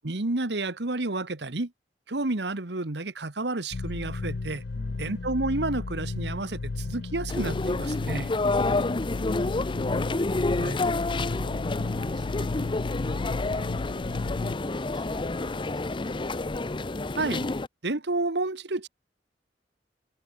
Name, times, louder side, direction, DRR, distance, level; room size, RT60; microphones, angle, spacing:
voice 1, 0.0-1.7 2.1-4.6 5.0-8.3 10.6-10.8 17.1-17.5 17.8-18.9, right 2 dB, 65° right, 1.5 m, -30 dB
sound 1, 3.7-14.6, left 3 dB, 65° left, 0.6 m, -33 dB
voice 2, 4.7-5.1 8.5-16.3, right 1 dB, 25° right, 3.2 m, -51 dB
sound 2, 7.3-17.7, left 2 dB, 30° left, 0.7 m, -29 dB
head